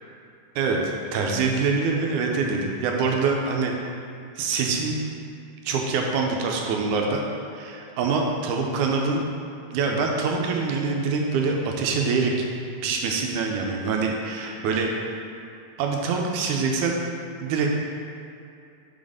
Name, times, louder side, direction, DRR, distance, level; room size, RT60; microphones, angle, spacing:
voice 1, 0.6-3.8 4.4-5.0 5.7-7.2 7.5-9.2 9.7-12.4 12.8-14.9 15.8-17.0 17.4-17.7, right 4 dB, 80° right, 1 dB, 2.0 m, -25 dB
5.6 x 4.0 x 4.9 m, 2.5 s
omnidirectional pair, 3.6 m